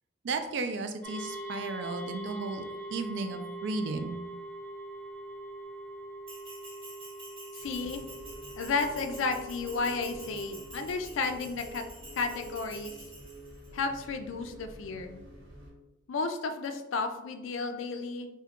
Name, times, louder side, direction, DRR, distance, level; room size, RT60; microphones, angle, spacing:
voice 1, 0.2-2.7 2.9-4.2, right 3 dB, 60° right, 8 dB, 0.3 m, -34 dB
sound 1, 1.0-10.9, right 1 dB, 5° left, 0.7 m, -43 dB
Bell, 6.3-13.7, right 2 dB, 30° right, 0.8 m, -49 dB
voice 2, 7.5-8.1 8.6-11.9 12.2-12.9 13.7-15.2 16.1-18.3, left 4 dB, 80° left, 7 dB, 0.4 m, -32 dB
sound 2, 7.6-15.7, equal, 85° right, 0.9 m, -49 dB
2.7 x 2.3 x 3.6 m, 1.0 s
head